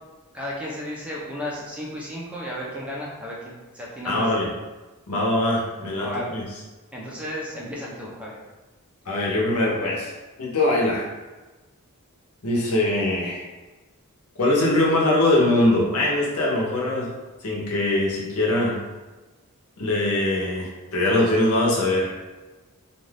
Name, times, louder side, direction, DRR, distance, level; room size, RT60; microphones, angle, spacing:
voice 1, 0.3-4.2 6.0-6.3 6.9-8.4, equal, 5° right, -5 dB, 0.5 m, -33 dB
voice 2, 4.0-4.5 5.1-6.4 9.1-10.1 10.4-11.1 12.4-13.4 14.4-17.1 17.4-18.8 19.8-22.1, left 1 dB, 80° left, -3 dB, 0.8 m, -22 dB
2.6 x 2.3 x 3.2 m, 1.2 s
head